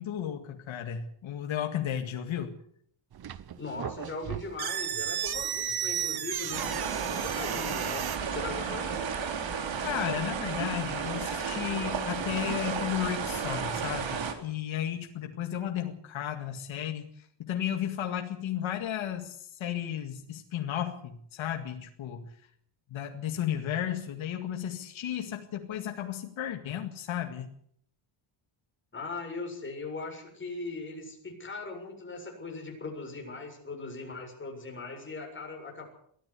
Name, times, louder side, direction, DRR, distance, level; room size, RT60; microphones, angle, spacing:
voice 1, 0.0-2.6 8.6-8.7 9.8-22.4 22.9-27.5, left 10 dB, 70° left, 4 dB, 2.1 m, -34 dB
sound 1, 3.1-8.2, right 10 dB, 50° right, 1.2 m, -34 dB
voice 2, 3.6-9.0 28.9-35.9, left 3 dB, 25° left, 1 dB, 7.3 m, -39 dB
sound 2, 6.5-14.3, right 6 dB, 65° right, 3.7 m, -33 dB
22.5 x 15.0 x 8.3 m, 0.65 s
cardioid pair, 150°, 49 cm